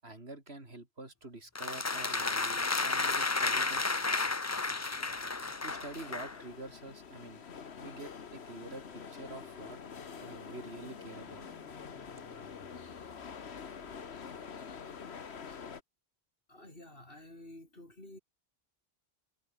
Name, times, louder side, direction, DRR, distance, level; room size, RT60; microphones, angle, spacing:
voice 1, 0.0-3.8 5.6-7.4 7.8-8.9 9.1-9.8 10.2-11.4, right 2 dB, 75° right, 4.7 m, -47 dB
sound 1, 1.5-6.4, left 3 dB, 20° left, 0.5 m, -32 dB
sound 2, 5.0-15.8, left 6 dB, 85° left, 1.6 m, -47 dB
sound 3, 7.5-14.4, left 1 dB, 40° left, 5.6 m, -61 dB
voice 2, 16.5-18.2, left 1 dB, 60° left, 6.6 m, -51 dB
omnidirectional pair, 1.1 m